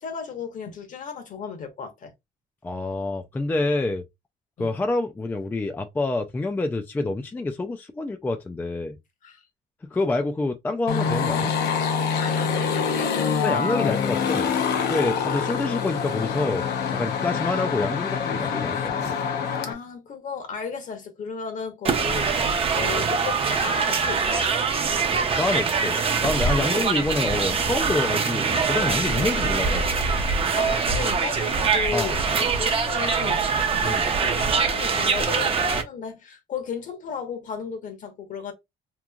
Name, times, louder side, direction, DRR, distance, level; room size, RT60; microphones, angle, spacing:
voice 1, 0.0-2.1 4.6-4.8 9.2-9.4 12.2-13.1 15.0-15.5 19.6-24.5 26.6-27.3 29.1-29.8 30.5-38.5, left 6 dB, 50° left, 1.0 m, -35 dB
voice 2, 2.6-4.1 4.6-9.0 9.8-11.5 13.4-14.5 14.8-16.7 16.9-19.2 25.4-29.8 31.9-32.1 33.8-34.1, left 2 dB, 10° left, 0.3 m, -27 dB
sound 1, 10.9-19.7, left 6 dB, 70° left, 0.8 m, -25 dB
sound 2, 21.8-35.8, right 5 dB, 35° right, 0.6 m, -23 dB
3.0 x 2.5 x 2.3 m
cardioid pair, 110°, 17 cm